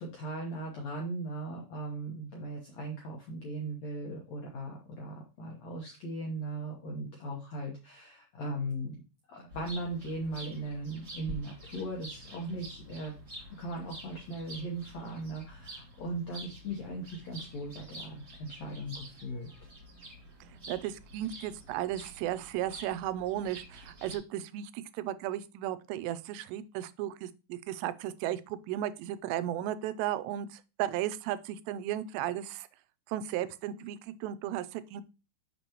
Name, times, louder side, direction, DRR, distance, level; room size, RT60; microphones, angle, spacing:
voice 1, 0.0-9.0 9.3-13.1 13.6-19.5, right 1 dB, 75° left, -1 dB, 1.6 m, -38 dB
sound 1, 9.5-24.2, right 1 dB, 30° right, 1.6 m, -48 dB
voice 2, 20.5-32.7 33.1-35.0, right 12 dB, 85° right, 14 dB, 2.8 m, -35 dB
6.8 x 6.3 x 2.9 m, 0.31 s
omnidirectional pair, 4.9 m